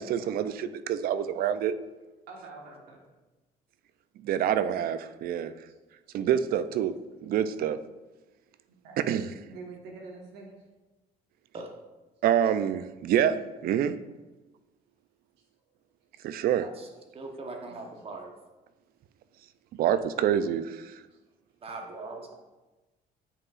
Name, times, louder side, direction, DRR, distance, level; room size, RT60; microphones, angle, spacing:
voice 1, 0.0-1.7 4.2-5.5 6.1-6.9 7.2-7.8 9.0-9.3 12.2-14.0 16.2-16.7 19.8-20.9, right 9 dB, 60° right, 13 dB, 0.4 m, -26 dB
voice 2, 2.3-3.0 6.1-6.3 8.7-9.1 9.5-10.5 16.1-16.2 17.6-17.8 19.7-19.8, right 3 dB, 85° right, 0 dB, 1.4 m, -46 dB
voice 3, 17.1-18.3 21.6-22.3, right 3 dB, 35° right, 3 dB, 1.0 m, -40 dB
8.6 x 4.8 x 2.4 m, 1.1 s
cardioid pair, 110°, 17 cm